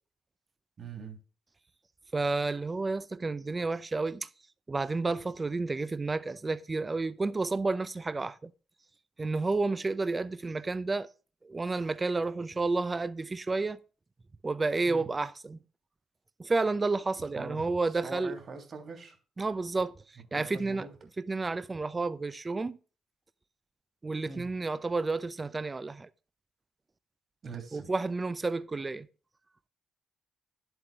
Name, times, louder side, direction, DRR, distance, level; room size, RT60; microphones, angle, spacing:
voice 1, 0.8-1.2 14.9-15.1 17.4-19.2 20.3-20.9 24.2-24.4 27.4-27.9, right 4 dB, 45° right, 2.8 m, -43 dB
voice 2, 2.1-4.3 4.7-8.5 9.2-11.1 11.4-13.8 14.4-15.6 16.4-18.4 19.4-19.9 20.3-20.9 21.2-22.8 24.0-26.1 27.7-29.1, right 3 dB, 25° right, 0.6 m, -31 dB
11.0 x 8.0 x 3.5 m
cardioid pair, 90°, 0 cm